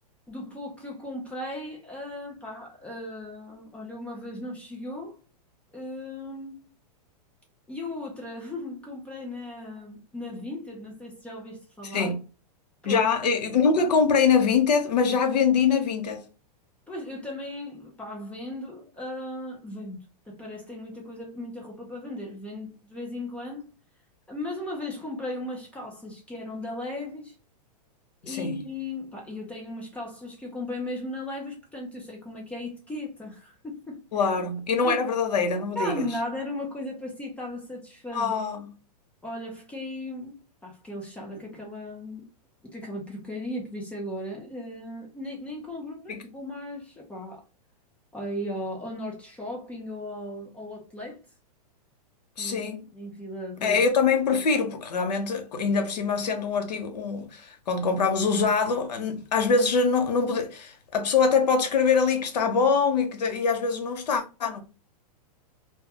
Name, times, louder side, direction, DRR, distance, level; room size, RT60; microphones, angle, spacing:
voice 1, 0.3-5.2 5.7-6.7 7.7-12.1 12.8-13.1 16.9-23.7 24.3-27.4 28.2-34.3 34.8-35.0 35.7-38.3 39.2-42.3 42.6-47.4 48.1-51.2 52.4-52.7 52.9-53.8, left 1 dB, 5° left, 0.5 m, -36 dB
voice 2, 12.8-16.2 28.2-28.5 34.1-36.1 38.1-38.7 46.1-46.2 52.4-52.8 53.6-64.6, left 5 dB, 90° left, 0.8 m, -24 dB
2.2 x 2.2 x 2.8 m
hypercardioid pair, 150°, 20 cm